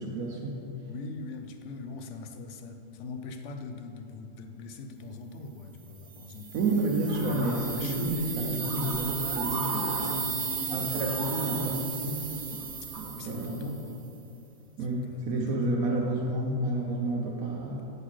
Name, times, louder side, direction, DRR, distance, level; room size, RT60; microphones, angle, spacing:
voice 1, 0.0-0.8 6.5-10.1 10.7-12.6 13.0-13.6 14.8-17.8, right 2 dB, 90° right, -2 dB, 1.2 m, -30 dB
voice 2, 0.9-6.7 7.2-8.8 9.5-11.0 13.1-14.0 15.0-15.7, left 3 dB, 65° left, 6 dB, 0.9 m, -41 dB
sound 1, 6.1-14.0, right 6 dB, 60° right, 0.5 m, -35 dB
sound 2, 7.1-13.0, right 1 dB, 40° right, 1.6 m, -40 dB
8.1 x 4.0 x 6.1 m, 2.9 s
omnidirectional pair, 1.5 m